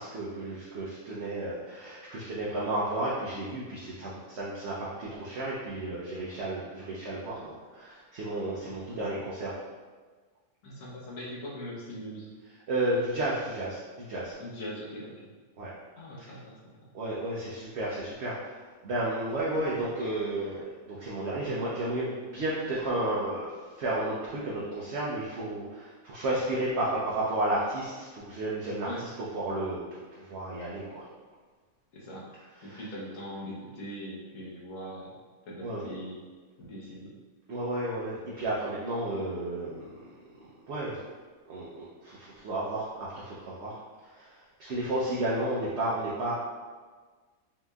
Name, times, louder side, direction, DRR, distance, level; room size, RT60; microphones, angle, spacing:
voice 1, 0.0-9.6 12.7-14.3 15.6-15.7 16.2-16.3 16.9-23.5 23.8-29.8 30.2-31.1 32.6-32.9 35.6-35.9 37.5-40.1 40.7-41.0 41.5-46.3, right 1 dB, 60° right, -6 dB, 0.9 m, -32 dB
voice 2, 10.6-12.3 14.4-15.3 16.0-16.7 28.8-29.0 31.9-32.3 32.6-35.1 35.5-36.2 36.6-37.1, equal, 70° left, -4 dB, 1.3 m, -41 dB
5.6 x 3.0 x 2.3 m, 1.4 s
omnidirectional pair, 1.5 m